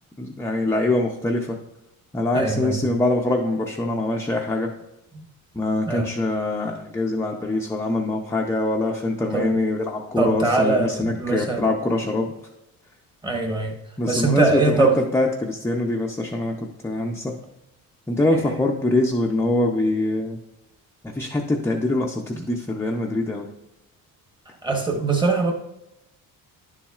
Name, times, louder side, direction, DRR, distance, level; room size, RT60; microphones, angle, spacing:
voice 1, 0.2-1.6 2.1-4.7 5.5-12.3 14.0-14.9 15.1-17.3 18.1-20.4 21.0-23.5, left 2 dB, 10° left, 0 dB, 0.4 m, -24 dB
voice 2, 2.3-2.8 5.1-5.2 5.9-6.1 9.3-9.5 10.2-11.6 13.2-13.7 14.1-15.0 18.3-18.5 24.6-25.5, right 3 dB, 15° right, 2 dB, 1.1 m, -22 dB
10.5 x 7.2 x 2.4 m, 0.88 s
cardioid pair, 150°, 35 cm